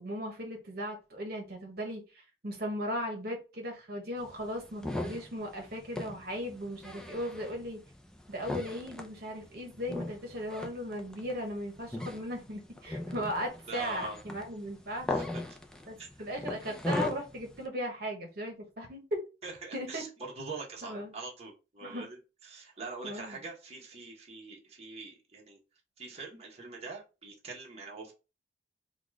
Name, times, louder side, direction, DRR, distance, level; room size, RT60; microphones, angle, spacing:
voice 1, 0.0-7.8 8.3-15.1 15.9-19.2 19.7-20.1 20.8-21.1 21.8-22.1 23.0-23.4, equal, 60° right, 1 dB, 1.2 m, -37 dB
sound 1, 4.2-17.6, left 2 dB, 5° left, 0.5 m, -39 dB
voice 2, 13.7-14.2 15.1-15.6 16.0-16.1 19.4-20.1 20.3-25.6 26.0-28.1, right 3 dB, 35° right, -2 dB, 1.2 m, -44 dB
4.0 x 2.4 x 4.6 m, 0.30 s
head